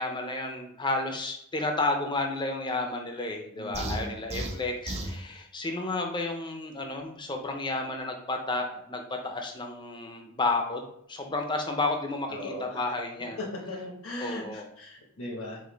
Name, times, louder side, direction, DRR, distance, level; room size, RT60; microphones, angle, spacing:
voice 1, 0.0-13.4 14.2-14.6, left 2 dB, 20° left, 3 dB, 0.6 m, -31 dB
voice 2, 3.5-4.2 12.3-12.8 13.4-15.7, left 1 dB, 65° left, -2 dB, 1.0 m, -38 dB
sound 1, 3.7-5.2, right 1 dB, 30° right, 0.6 m, -34 dB
5.0 x 2.7 x 3.9 m, 0.71 s
head